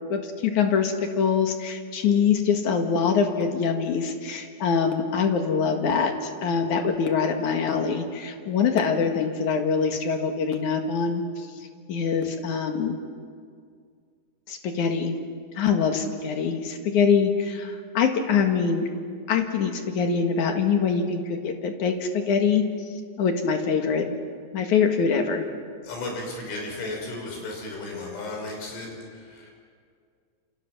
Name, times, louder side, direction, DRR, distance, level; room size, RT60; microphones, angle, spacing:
voice 1, 0.1-11.2 11.9-13.0 14.5-15.2 15.6-18.9 19.3-22.7 23.2-24.1 24.5-25.4, left 6 dB, 55° left, 4 dB, 2.4 m, -24 dB
voice 2, 25.8-29.5, left 2 dB, 85° left, 1 dB, 8.4 m, -34 dB
29.0 x 28.5 x 6.1 m, 2.1 s
omnidirectional pair, 5.5 m